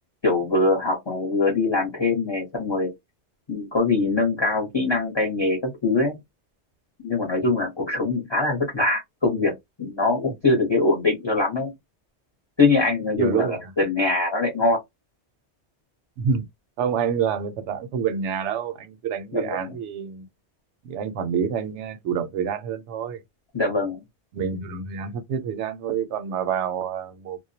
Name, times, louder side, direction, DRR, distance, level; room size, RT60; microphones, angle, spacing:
voice 1, 0.2-2.9 3.5-6.2 7.0-9.5 9.8-11.7 12.6-14.8 19.3-19.8 23.5-24.0, left 3 dB, 30° left, 0.7 m, -23 dB
voice 2, 13.1-13.6 16.2-16.4 16.8-20.3 20.8-23.2 24.3-27.4, right 7 dB, 85° right, 0.9 m, -27 dB
2.2 x 2.1 x 2.7 m
omnidirectional pair, 1.2 m